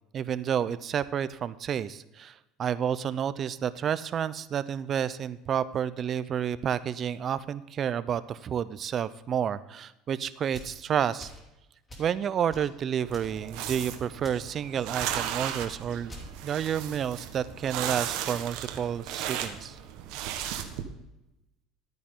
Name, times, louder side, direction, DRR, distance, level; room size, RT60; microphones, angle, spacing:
voice 1, 0.1-11.3 12.0-16.1 16.4-19.8, right 8 dB, 35° right, 16 dB, 0.5 m, -30 dB
sound 1, 10.5-10.8 11.2-11.5 11.9-12.1 12.5-12.7 13.1-13.3 13.7-13.9 14.2-14.5 15.0-15.2 15.6-15.7 16.1-16.3, equal, 15° left, 2.7 m, -45 dB
sound 2, 13.0-20.8, right 10 dB, 70° right, 1.3 m, -36 dB
13.0 x 9.3 x 3.7 m, 0.95 s
cardioid pair, 135°, 0 cm